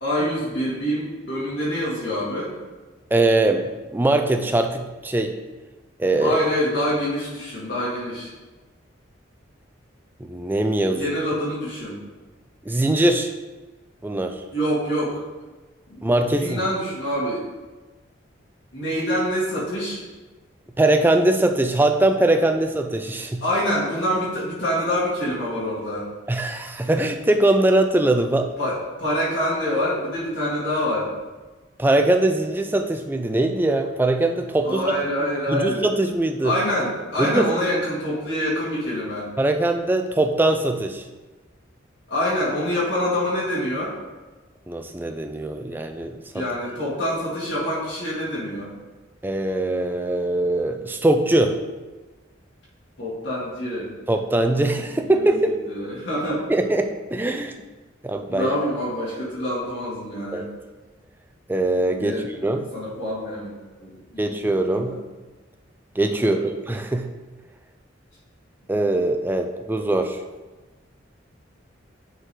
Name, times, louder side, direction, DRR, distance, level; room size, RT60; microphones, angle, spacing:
voice 1, 0.0-2.5 6.2-8.3 10.9-12.0 14.5-15.2 15.9-17.5 18.7-20.0 23.4-26.1 28.6-31.1 34.6-35.9 36.4-39.3 42.1-43.9 46.3-48.7 53.0-53.9 55.0-56.4 58.3-60.5 62.0-62.4 62.7-64.3 64.6-65.0 66.2-66.4, equal, 65° left, -8 dB, 1.8 m, -26 dB
voice 2, 3.1-5.3 6.0-6.4 10.2-11.0 12.7-13.3 14.0-14.3 16.0-16.6 20.8-23.4 26.3-28.5 31.8-35.0 35.5-36.5 37.2-37.5 39.4-41.0 44.7-46.1 49.2-51.6 54.1-55.6 56.5-57.5 58.0-58.5 60.3-60.5 61.5-62.7 64.2-64.9 66.0-67.1 68.7-70.2, right 2 dB, 10° right, 5 dB, 0.3 m, -21 dB
9.0 x 3.8 x 3.1 m, 1.2 s
head